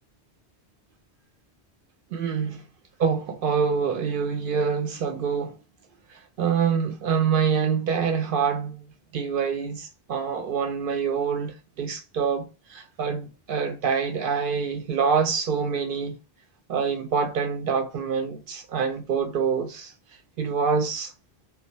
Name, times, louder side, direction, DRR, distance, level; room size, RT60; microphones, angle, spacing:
voice 1, 2.1-2.6 3.0-5.6 6.1-16.2 16.7-19.9 20.4-21.1, right 6 dB, 60° right, 0.7 m, -26 dB
2.5 x 2.1 x 2.8 m
omnidirectional pair, 1.1 m